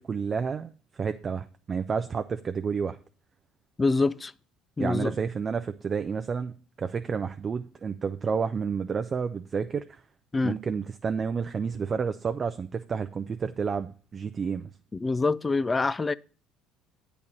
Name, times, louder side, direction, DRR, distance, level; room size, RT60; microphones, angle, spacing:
voice 1, 0.0-3.0 4.8-10.0 10.4-14.7, right 6 dB, 35° right, 0.5 m, -30 dB
voice 2, 3.8-4.3 4.8-5.2 10.3-10.6 14.9-16.1, left 3 dB, 25° left, 0.3 m, -25 dB
8.5 x 4.1 x 7.1 m
hypercardioid pair, 70°, 0 cm